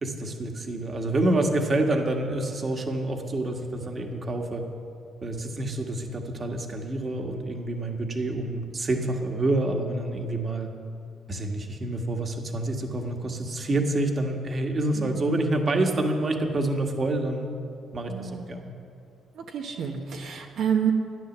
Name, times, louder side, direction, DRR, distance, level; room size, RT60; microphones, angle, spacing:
voice 1, 0.0-4.6 5.2-10.7 11.3-17.5 17.9-18.7, right 2 dB, 40° right, 3 dB, 1.6 m, -27 dB
voice 2, 18.1-18.5 19.4-20.9, right 8 dB, 75° right, 1 dB, 1.2 m, -29 dB
13.0 x 9.9 x 7.3 m, 2.4 s
cardioid pair, 90°, 0 cm